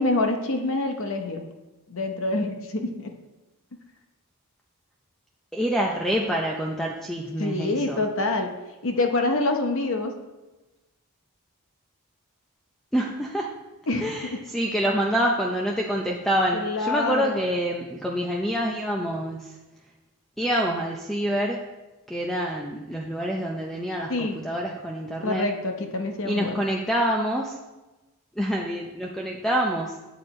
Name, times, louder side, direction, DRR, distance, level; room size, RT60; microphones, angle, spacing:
voice 1, 0.0-1.4 1.9-3.1 7.4-8.5 8.8-10.2 13.9-14.4 16.5-17.5 24.1-24.4 25.2-26.5, left 2 dB, 60° left, 5 dB, 0.8 m, -26 dB
voice 2, 5.5-8.0 12.9-13.5 14.0-19.6 20.4-21.6 22.1-25.5 26.2-27.6 28.4-30.0, equal, ahead, -1 dB, 0.5 m, -26 dB
8.0 x 6.8 x 4.3 m, 1.1 s
head